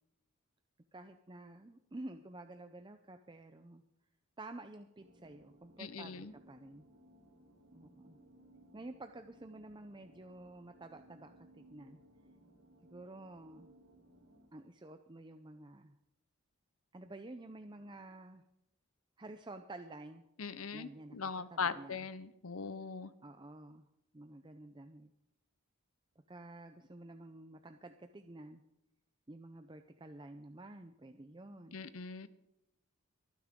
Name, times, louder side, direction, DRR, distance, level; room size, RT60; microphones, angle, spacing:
voice 1, 0.9-3.8 4.4-6.9 7.7-8.2 8.7-12.0 12.9-13.7 14.5-16.0 16.9-18.4 19.2-20.2 20.7-22.1 23.2-23.8 24.1-25.1 26.3-28.6 29.3-31.8, right 2 dB, 20° right, 7 dB, 0.6 m, -50 dB
sound 1, 5.0-14.5, right 1 dB, 70° right, 3.7 m, -63 dB
voice 2, 5.8-6.3 20.4-23.1 31.7-32.3, left 5 dB, 80° left, 14 dB, 0.9 m, -40 dB
24.5 x 9.6 x 3.7 m, 0.83 s
head